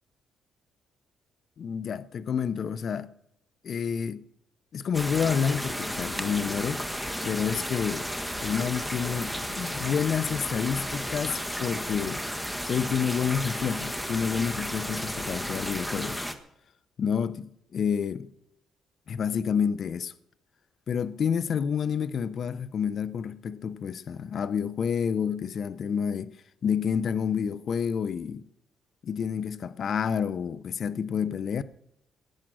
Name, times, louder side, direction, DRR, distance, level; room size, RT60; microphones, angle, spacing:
voice 1, 1.6-3.1 3.6-4.2 4.7-6.8 7.2-8.1 8.4-12.2 12.7-16.2 17.0-18.3 19.1-20.1 20.9-26.4 26.6-28.4 29.0-31.6, left 7 dB, 55° left, 0.7 m, -29 dB
sound 1, 4.9-16.4, equal, ahead, 1.4 m, -33 dB
17.5 x 10.5 x 6.2 m
cardioid pair, 90°, 0 cm